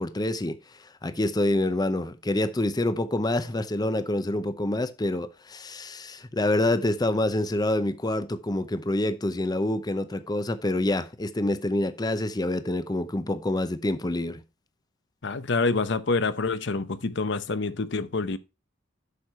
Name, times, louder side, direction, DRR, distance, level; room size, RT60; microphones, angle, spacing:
voice 1, 0.0-14.4, left 1 dB, 20° left, 0.6 m, -27 dB
voice 2, 15.2-18.4, left 3 dB, 65° left, 0.8 m, -27 dB
8.4 x 6.5 x 4.3 m
head